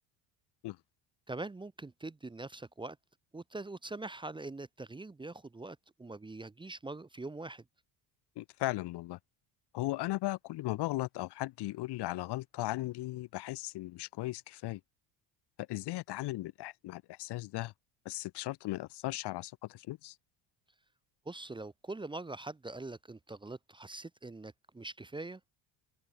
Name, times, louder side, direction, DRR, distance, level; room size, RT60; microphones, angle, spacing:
voice 1, 1.3-3.0 3.3-7.6 21.3-25.4, right 2 dB, 10° right, 0.7 m, -43 dB
voice 2, 8.3-9.2 9.7-14.8 15.7-17.7 18.0-20.1, left 17 dB, 65° left, 1.7 m, -37 dB
open air
cardioid pair, 110°, 43 cm